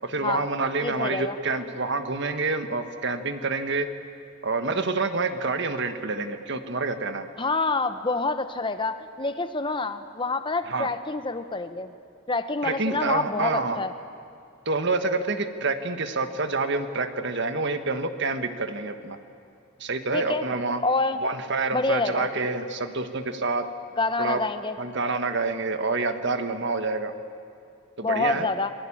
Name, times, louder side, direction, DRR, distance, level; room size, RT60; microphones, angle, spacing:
voice 1, 0.0-3.9 4.4-7.3 10.7-10.9 12.6-13.8 14.6-19.2 19.8-20.8 21.2-23.6 24.2-24.4 24.8-27.1 28.0-28.5, right 3 dB, 55° right, 8 dB, 1.6 m, -27 dB
voice 2, 0.8-1.4 7.4-11.9 12.3-13.9 20.1-20.4 20.8-21.2 21.7-22.3 24.0-24.8 28.0-28.7, left 3 dB, 25° left, 10 dB, 1.1 m, -27 dB
28.5 x 21.0 x 8.7 m, 2.4 s
head